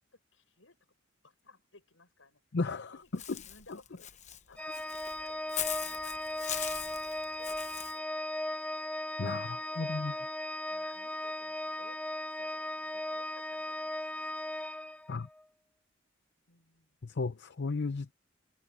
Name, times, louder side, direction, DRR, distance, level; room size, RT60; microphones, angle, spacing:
voice 1, 0.1-0.8 1.2-2.4 2.9-4.1 4.5-8.2 9.3-10.2 10.7-14.3 16.5-17.2, left 3 dB, 80° left, 7.2 m, -60 dB
voice 2, 2.5-3.4 3.7-3.8 9.2-10.1 15.1-15.3 17.0-18.1, left 3 dB, 60° left, 0.6 m, -34 dB
Walk footsteps / Bird, 3.2-7.9, left 10 dB, 40° left, 1.0 m, -40 dB
Organ, 4.6-15.4, left 1 dB, 5° left, 0.4 m, -37 dB
head